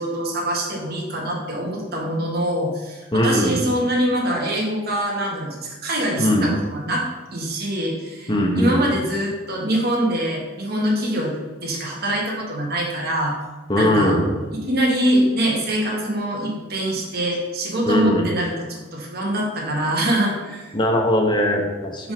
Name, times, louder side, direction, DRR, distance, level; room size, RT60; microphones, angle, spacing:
voice 1, 0.0-7.0 7.3-11.3 11.6-13.3 13.8-14.2 14.7-20.7 22.0-22.1, right 1 dB, 55° right, -2 dB, 1.4 m, -24 dB
voice 2, 3.1-3.6 6.2-6.5 8.3-8.9 13.7-14.3 17.9-18.3 20.7-22.1, left 1 dB, 25° left, 1 dB, 0.9 m, -20 dB
5.0 x 3.8 x 5.0 m, 1.2 s
head